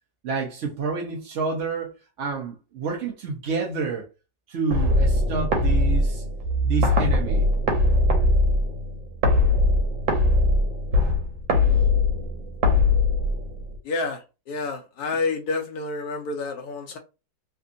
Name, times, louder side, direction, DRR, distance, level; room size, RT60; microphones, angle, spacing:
voice 1, 0.2-1.9 2.2-4.1 4.5-6.2 6.6-7.5, right 4 dB, 60° right, 0.8 m, -29 dB
sound 1, 4.7-13.8, left 2 dB, 90° right, 1.6 m, -21 dB
voice 2, 13.8-17.0, left 3 dB, 70° left, 0.9 m, -29 dB
3.4 x 2.9 x 2.5 m
omnidirectional pair, 2.0 m